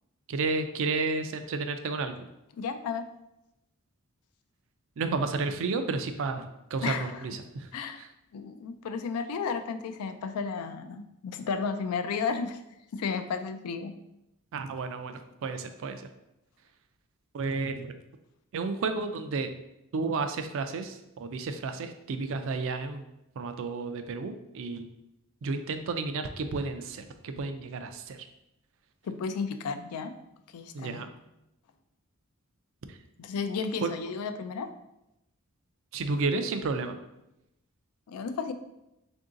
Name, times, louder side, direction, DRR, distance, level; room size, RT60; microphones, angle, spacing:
voice 1, 0.3-2.3 5.0-7.7 8.0-8.1 14.5-16.1 17.3-17.9 18.5-19.5 19.9-23.1 23.4-24.9 25.4-28.3 30.7-31.1 32.9-33.0 33.8-33.9 35.9-37.0, right 3 dB, 60° right, 8 dB, 0.4 m, -32 dB
voice 2, 2.5-3.0 6.8-7.2 7.7-8.0 8.3-12.6 12.9-13.9 29.0-30.1 30.5-31.0 33.2-34.7 38.1-38.5, left 5 dB, 85° left, 8 dB, 0.4 m, -33 dB
3.7 x 2.6 x 3.6 m, 0.88 s
head